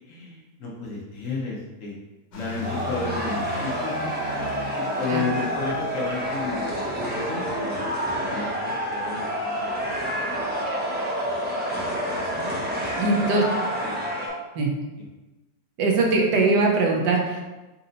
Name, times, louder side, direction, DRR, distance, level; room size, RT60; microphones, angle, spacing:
voice 1, 0.1-1.9 2.3-4.1 4.7-6.6 7.0-10.0 10.5-10.6 13.3-14.0, left 4 dB, 55° left, -4 dB, 1.1 m, -33 dB
sound 1, 2.3-7.6, left 1 dB, 85° left, 1.5 m, -39 dB
sound 2, 2.6-14.3, equal, 15° right, 0.4 m, -28 dB
voice 2, 13.0-13.4 14.5-14.7 15.8-17.4, right 3 dB, 80° right, 0 dB, 1.4 m, -21 dB
4.2 x 2.7 x 3.9 m, 1.1 s
omnidirectional pair, 1.8 m